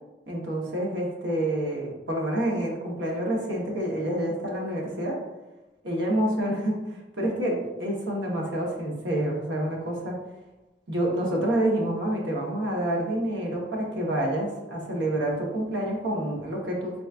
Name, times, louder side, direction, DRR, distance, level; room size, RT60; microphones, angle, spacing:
voice 1, 0.3-5.2 5.8-10.2 10.9-16.9, right 1 dB, 85° right, -2 dB, 1.1 m, -28 dB
4.0 x 3.4 x 2.4 m, 1.0 s
head